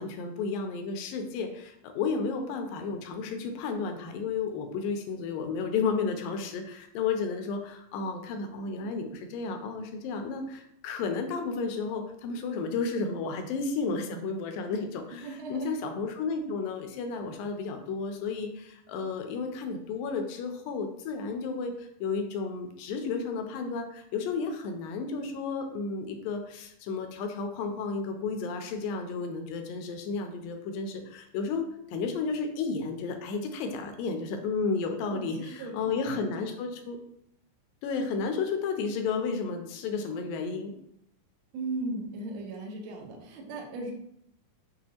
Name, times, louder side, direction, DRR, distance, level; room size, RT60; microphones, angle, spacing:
voice 1, 0.0-37.0 37.8-40.7, left 4 dB, 80° left, 5 dB, 2.1 m, -32 dB
voice 2, 15.2-15.7 35.0-36.3 41.5-43.9, right 2 dB, 85° right, 0 dB, 1.4 m, -37 dB
6.3 x 2.4 x 2.8 m, 0.73 s
omnidirectional pair, 4.1 m